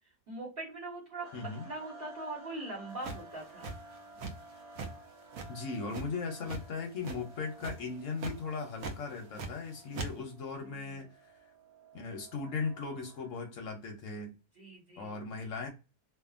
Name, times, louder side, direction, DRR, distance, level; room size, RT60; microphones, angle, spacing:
voice 1, 0.3-1.3 1.6-3.7 10.7-11.0 14.6-15.1, right 2 dB, 40° right, 1.2 m, -42 dB
sound 1, 1.2-13.5, right 1 dB, 85° right, 0.3 m, -54 dB
voice 2, 1.3-1.7 5.5-11.3 11.9-14.3 15.0-15.7, left 4 dB, 65° left, 0.9 m, -38 dB
sound 2, 3.0-4.5 4.8-4.9 5.3-6.6 7.0-7.3 7.6-7.9 8.2-8.3 8.8-9.7 9.9-10.1, right 3 dB, 70° right, 0.9 m, -40 dB
2.7 x 2.4 x 2.4 m
omnidirectional pair, 1.7 m